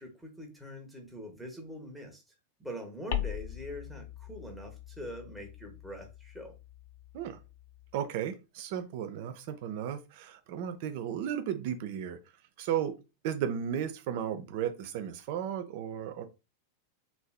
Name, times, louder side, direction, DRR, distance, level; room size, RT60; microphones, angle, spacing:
voice 1, 0.0-2.2 2.6-6.5, equal, 5° right, 0.9 m, -43 dB
sound 1, 3.1-8.0, left 13 dB, 50° left, 0.4 m, -41 dB
voice 2, 7.9-12.2 12.6-13.0 13.2-16.2, right 9 dB, 50° right, 0.5 m, -34 dB
3.2 x 2.6 x 2.3 m
figure-of-eight pair, 90°, 0 cm